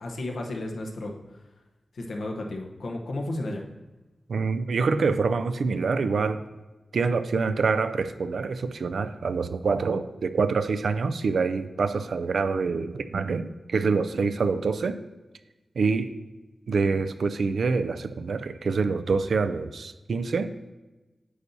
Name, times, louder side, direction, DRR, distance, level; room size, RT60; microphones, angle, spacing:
voice 1, 0.0-1.4 1.9-3.6, left 1 dB, 80° left, 1 dB, 0.9 m, -33 dB
voice 2, 4.3-6.4 6.9-15.0 15.8-16.2 16.7-20.5, right 4 dB, 80° right, 11 dB, 0.4 m, -26 dB
9.5 x 6.9 x 2.7 m, 1.1 s
cardioid pair, 70°, 0 cm